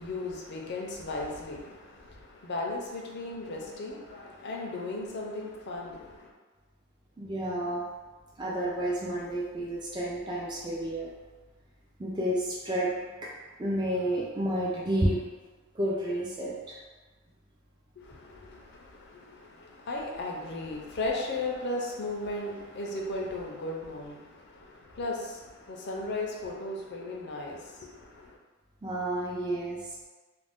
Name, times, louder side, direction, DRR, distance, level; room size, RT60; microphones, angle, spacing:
voice 1, 0.0-6.3 18.0-28.3, left 2 dB, 50° left, -1 dB, 0.5 m, -36 dB
voice 2, 7.2-7.8 8.4-11.1 12.0-12.9 13.6-15.2 15.8-16.7 28.8-29.8, right 1 dB, 20° right, -5 dB, 0.3 m, -30 dB
2.5 x 2.1 x 3.4 m, 1.3 s
head